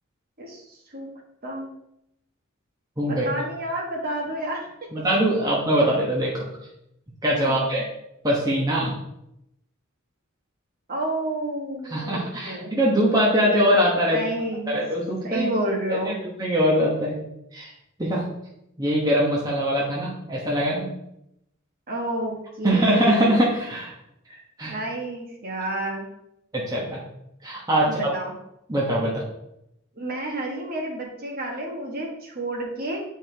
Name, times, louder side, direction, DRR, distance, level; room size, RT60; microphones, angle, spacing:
voice 1, 0.4-1.1 1.4-1.7 3.1-4.7 7.4-7.7 10.9-12.7 14.1-14.8 15.2-16.2 21.9-23.5 24.7-26.0 27.8-28.3 29.9-33.0, right 1 dB, 45° right, -1 dB, 1.5 m, -30 dB
voice 2, 4.9-6.4 7.2-7.8 8.2-8.9 11.9-14.2 14.7-15.5 15.9-17.2 17.5-17.7 18.0-18.2 18.8-20.9 22.6-23.9 24.6-24.7 26.5-27.0 27.4-28.1 28.7-29.2, equal, 15° right, -5 dB, 1.1 m, -22 dB
8.2 x 4.6 x 3.4 m, 0.82 s
head